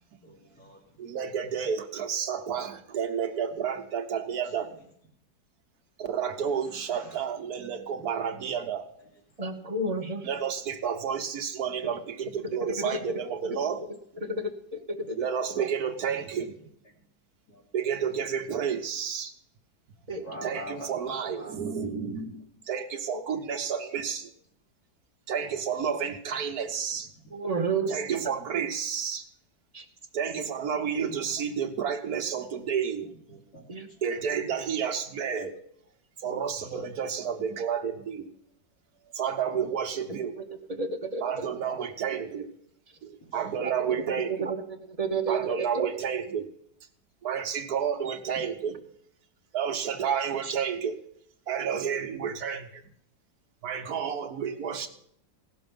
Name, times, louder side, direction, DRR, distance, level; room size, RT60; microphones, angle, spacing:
voice 1, 0.2-1.2 4.4-4.8 6.7-7.3 8.1-8.4 9.0-9.1 9.5-9.7 9.9-10.5 15.0-15.2 16.0-16.7 17.5-17.6 18.5-18.7 20.2-21.8 23.3-23.9 25.8-25.9 31.0-31.4 33.3-34.0 36.6-36.8 41.6-41.9 43.2-44.2 46.1-46.2 48.2-48.4 50.2-50.7 54.4-54.9, equal, 65° left, 3.4 m, -48 dB
voice 2, 1.0-4.7 6.0-8.9 10.2-13.8 15.2-16.5 17.7-19.3 20.4-24.3 25.3-27.1 27.9-29.2 30.1-33.1 34.0-35.5 36.2-38.3 39.1-40.4 41.2-42.5 43.0-44.5 45.3-46.5 47.2-48.8 49.5-51.0 51.5-52.8 53.6-54.9, right 7 dB, 65° right, 1.5 m, -31 dB
voice 3, 9.4-10.3 12.8-12.9 13.4-13.6 14.2-15.2 15.6-15.7 20.1-20.2 27.3-28.2 29.7-29.8 33.7-33.9 40.4-40.5 40.8-41.2 43.6-44.0 44.4-44.6 44.9-45.9 50.4-50.5, right 3 dB, 30° right, 0.7 m, -31 dB
16.5 x 6.8 x 5.3 m
omnidirectional pair, 1.8 m